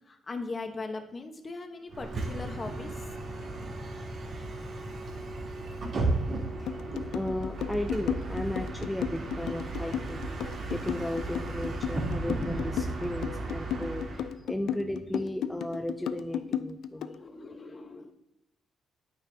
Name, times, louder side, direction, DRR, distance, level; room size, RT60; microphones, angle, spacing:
voice 1, 0.1-3.0 6.6-6.7 17.1-18.1, left 3 dB, 35° left, 6 dB, 1.1 m, -39 dB
Bus, 1.9-14.3, right 2 dB, 55° right, 3.2 m, -35 dB
sound 1, 6.7-17.2, left 9 dB, 75° left, 0.4 m, -34 dB
voice 2, 7.1-17.2, left 1 dB, 5° left, 4 dB, 0.6 m, -35 dB
10.5 x 9.3 x 2.8 m, 0.83 s
cardioid pair, 90°, 0 cm